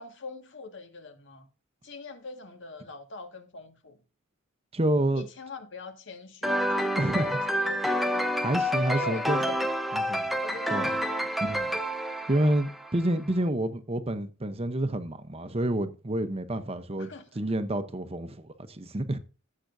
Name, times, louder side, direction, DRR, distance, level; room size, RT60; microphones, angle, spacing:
voice 1, 0.0-1.5 1.8-4.0 5.1-8.7 8.9-9.7 10.4-11.0 17.0-17.4, left 3 dB, 60° left, 1.9 m, -42 dB
voice 2, 4.7-5.3 6.9-7.3 8.4-9.4 9.9-10.3 10.7-10.9 11.4-11.7 12.3-17.1 17.4-19.2, right 1 dB, 30° right, 0.8 m, -28 dB
sound 1, 6.4-13.1, equal, ahead, 0.9 m, -28 dB
15.0 x 7.6 x 2.6 m
head